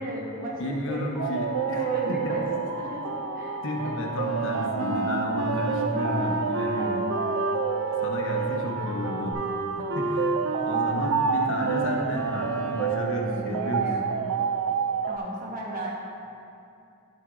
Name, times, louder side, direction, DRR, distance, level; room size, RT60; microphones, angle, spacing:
voice 1, 0.0-1.3 1.7-3.9 5.7-6.0 6.4-7.0 13.2-14.2 15.0-15.9, right 1 dB, 40° right, -3 dB, 1.0 m, -36 dB
voice 2, 0.6-2.3 3.6-7.1 8.0-9.4 9.9-10.3 10.7-13.9, left 1 dB, 60° left, 0 dB, 1.0 m, -32 dB
Alarm, 1.1-9.3, left 3 dB, 10° right, 1.6 m, -38 dB
sound 1, 1.2-15.2, right 7 dB, 85° right, 0.4 m, -29 dB
Wind instrument woodwind instrument, 4.2-13.0, right 1 dB, 55° right, 0.7 m, -32 dB
11.5 x 7.9 x 2.4 m, 2.6 s
head